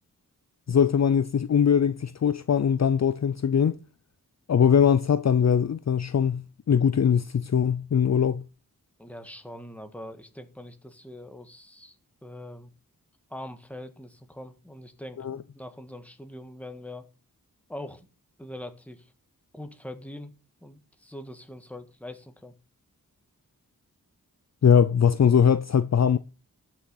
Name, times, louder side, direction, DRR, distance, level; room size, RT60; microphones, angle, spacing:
voice 1, 0.7-3.8 4.5-8.4 15.2-15.4 24.6-26.2, left 7 dB, 50° left, 0.5 m, -21 dB
voice 2, 9.0-11.9 12.2-12.7 13.3-17.1 17.7-18.1 18.4-19.1 19.5-20.3 20.6-22.5, left 1 dB, 5° left, 1.6 m, -42 dB
12.5 x 6.2 x 5.7 m
wide cardioid pair, 90°, 34 cm